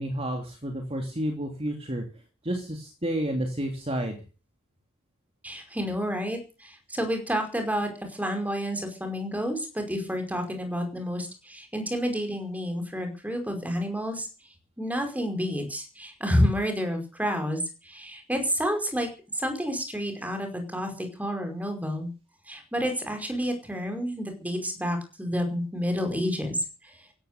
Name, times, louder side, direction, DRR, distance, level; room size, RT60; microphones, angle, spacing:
voice 1, 0.0-2.0 2.4-4.2, right 1 dB, 30° right, 3 dB, 3.1 m, -30 dB
voice 2, 5.4-14.3 14.8-22.1 22.5-27.1, equal, 10° right, 5 dB, 5.1 m, -29 dB
16.0 x 13.0 x 6.8 m, 0.36 s
head